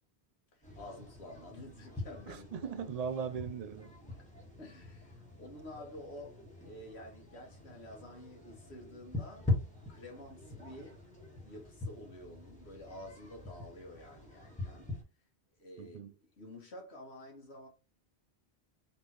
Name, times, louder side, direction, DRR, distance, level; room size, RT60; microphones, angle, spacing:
voice 1, 0.5-2.7 4.6-9.5 9.9-11.0 11.5-14.9 15.6-17.7, left 1 dB, 75° left, 1.8 m, -50 dB
sound 1, 0.6-15.0, left 2 dB, 5° left, 1.5 m, -42 dB
voice 2, 2.3-3.9 15.8-16.1, right 6 dB, 55° right, 0.5 m, -39 dB
4.1 x 3.5 x 3.0 m
omnidirectional pair, 1.1 m